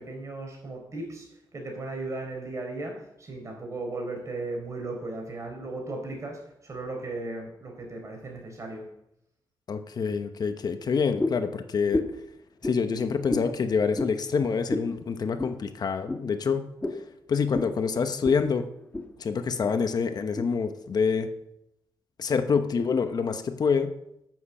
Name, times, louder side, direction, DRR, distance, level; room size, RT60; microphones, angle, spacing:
voice 1, 0.0-8.9, right 2 dB, 40° right, 2 dB, 4.4 m, -36 dB
voice 2, 9.7-12.0 12.6-16.7 17.3-18.6 19.2-21.3 22.2-23.9, left 5 dB, 50° left, 8 dB, 1.0 m, -26 dB
sound 1, 11.2-11.5 11.9-12.2 12.6-12.8 13.3-13.5 13.9-14.2 14.7-14.9 15.4-15.6 16.1-16.2 16.8-17.0 17.5-17.7 18.2-18.4 18.7-19.1 19.6-19.7 20.4-20.5, left 2 dB, 15° left, 1.7 m, -30 dB
11.0 x 7.7 x 7.2 m, 0.81 s
cardioid pair, 115°, 8 cm